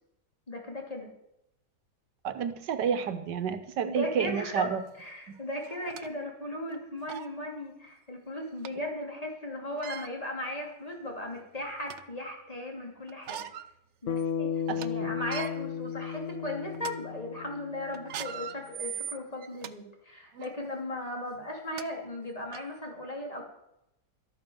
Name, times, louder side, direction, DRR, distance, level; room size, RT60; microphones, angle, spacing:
voice 1, 0.5-1.1 3.8-4.7 5.0-13.5 14.0-14.5 14.8-23.5, left 1 dB, 20° left, 1 dB, 3.1 m, -37 dB
voice 2, 2.2-4.8 14.7-15.1, right 7 dB, 80° right, 10 dB, 1.6 m, -30 dB
sound 1, 4.9-5.0 5.6-6.1 6.7-6.8 7.1-7.3 8.6-8.7 9.7-10.1 10.9-11.0 11.4-12.1 13.1-13.7 14.1-14.2 14.6-14.9 15.2-15.5 16.1-16.3 16.7-16.9 17.9-19.7 20.3-20.5 21.4-21.5 21.8-21.9 22.5-22.6, right 9 dB, 60° right, 0.7 m, -40 dB
Bass guitar, 14.1-18.5, left 7 dB, 65° left, 0.8 m, -34 dB
13.0 x 9.1 x 7.1 m, 0.83 s
omnidirectional pair, 1.8 m